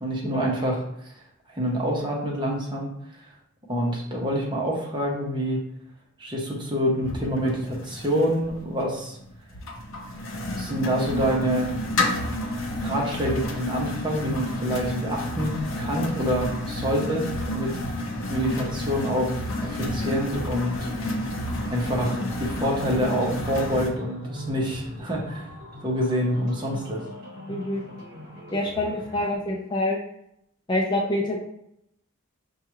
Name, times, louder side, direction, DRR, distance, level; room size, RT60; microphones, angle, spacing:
voice 1, 0.0-0.8 1.5-2.9 3.7-5.6 6.2-9.2 10.5-11.8 12.8-17.7 18.3-20.8 21.1-21.2 21.6-25.5 25.8-27.0, equal, 20° right, -2 dB, 0.8 m, -26 dB
sound 1, 7.0-23.9, left 1 dB, 75° left, 0.7 m, -30 dB
sound 2, 20.0-29.4, equal, 50° right, 1.0 m, -42 dB
voice 2, 27.5-27.8 28.5-30.0 30.7-31.4, left 1 dB, 20° left, -2 dB, 0.4 m, -26 dB
5.6 x 2.3 x 3.0 m, 0.78 s
head